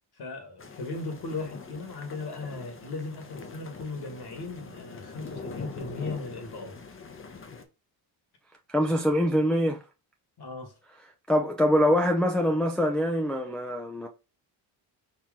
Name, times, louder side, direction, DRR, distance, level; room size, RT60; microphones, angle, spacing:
voice 1, 0.2-6.8 10.4-10.8, left 3 dB, 55° left, 1.9 m, -37 dB
sound 1, 0.6-7.6, left 4 dB, 30° left, 0.8 m, -43 dB
voice 2, 8.7-9.8 11.3-14.1, equal, ahead, 0.5 m, -24 dB
4.6 x 2.8 x 3.7 m
cardioid pair, 100°, 46 cm